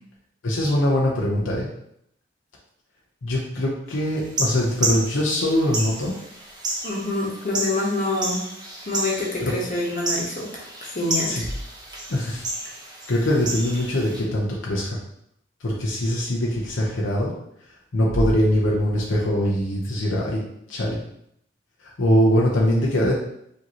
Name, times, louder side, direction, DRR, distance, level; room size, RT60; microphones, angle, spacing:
voice 1, 0.4-1.7 3.2-6.2 9.4-9.5 11.3-11.4 12.1-12.5 13.1-15.0 15.6-17.3 17.9-20.4 20.7-21.0 21.8-23.1, left 1 dB, 75° left, -3 dB, 0.7 m, -22 dB
sound 1, 4.2-14.2, right 2 dB, 20° right, 0.9 m, -31 dB
voice 2, 6.8-8.4 8.9-11.5, left 2 dB, 40° left, -3 dB, 1.1 m, -26 dB
sound 2, 11.1-12.5 13.6-14.3 16.5-16.6 17.9-19.9, equal, 80° right, 0.7 m, -35 dB
5.0 x 2.8 x 2.9 m, 0.74 s
head